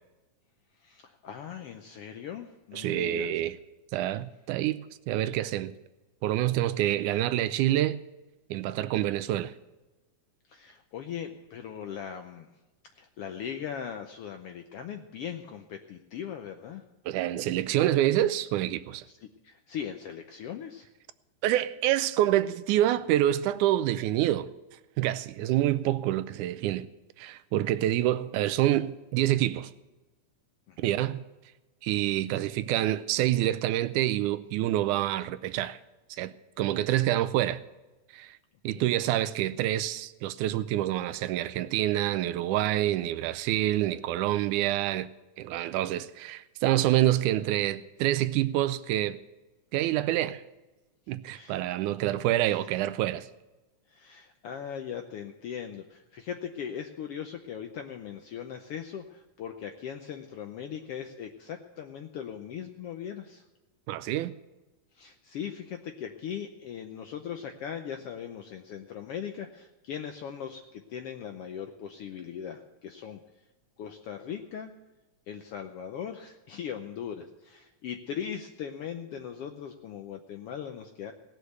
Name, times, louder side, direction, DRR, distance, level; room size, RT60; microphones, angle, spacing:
voice 1, 0.8-3.3 10.5-12.5 12.9-16.8 19.2-20.9 30.7-31.0 38.7-38.8 51.3-51.6 52.4-52.6 53.9-63.4 64.9-73.2 73.8-74.7 75.3-81.1, left 8 dB, 75° left, 1.3 m, -39 dB
voice 2, 2.7-3.6 3.9-5.7 6.2-8.0 8.5-9.5 17.1-19.1 21.4-24.5 25.0-26.9 27.2-29.7 30.8-31.2 31.8-35.8 36.1-37.6 38.1-38.4 38.6-45.1 45.4-49.2 49.7-50.4 51.1-53.3 63.9-64.4, right 13 dB, 85° right, 2.1 m, -27 dB
18.0 x 6.6 x 8.0 m
omnidirectional pair, 3.4 m